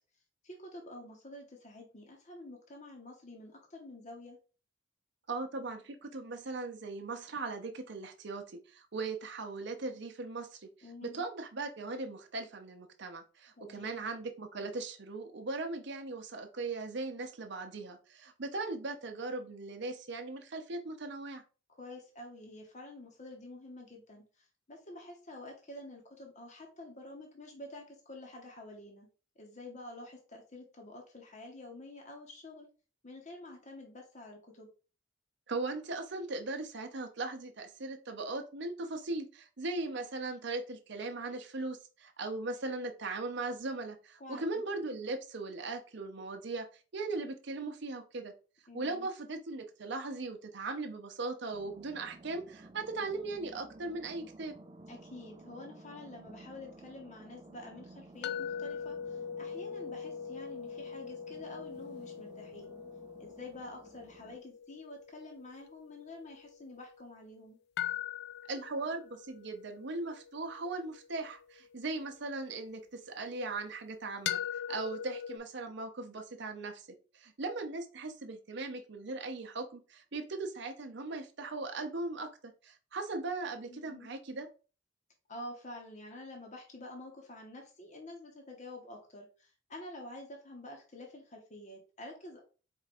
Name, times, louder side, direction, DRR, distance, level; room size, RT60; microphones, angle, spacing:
voice 1, 0.4-4.4 10.8-11.2 13.6-14.1 21.8-29.1 29.4-32.7 33.0-34.7 44.2-44.6 48.7-49.1 54.9-62.8 63.2-67.6 83.7-84.1 85.3-92.4, left 2 dB, 35° left, 1 dB, 1.0 m, -48 dB
voice 2, 5.3-10.7 11.0-21.4 35.5-46.7 46.9-48.3 48.7-54.5 68.5-76.9 77.1-84.5, right 3 dB, 60° right, 5 dB, 0.8 m, -39 dB
sound 1, 51.5-64.4, right 2 dB, 25° right, 0.4 m, -54 dB
sound 2, 58.2-67.2 67.8-72.9 74.3-75.4, left 8 dB, 55° left, 0.3 m, -41 dB
4.5 x 2.5 x 4.2 m, 0.35 s
head